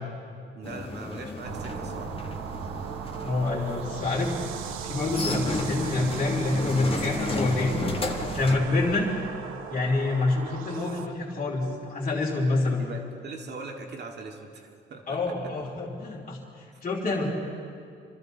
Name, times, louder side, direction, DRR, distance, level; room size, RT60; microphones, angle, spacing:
voice 1, 0.5-2.1 12.8-15.5 16.7-16.8, right 3 dB, 60° right, 2 dB, 2.0 m, -41 dB
ascensore germania, 0.6-8.6, left 3 dB, 30° left, 1.4 m, -34 dB
sound 1, 1.4-11.1, right 9 dB, 85° right, 0.8 m, -37 dB
voice 2, 3.2-4.3 4.8-7.8 8.2-9.1 9.7-12.8 15.1-17.3, left 2 dB, 45° left, -4 dB, 3.1 m, -27 dB
26.0 x 13.0 x 4.0 m, 2.5 s
cardioid pair, 90°, 20 cm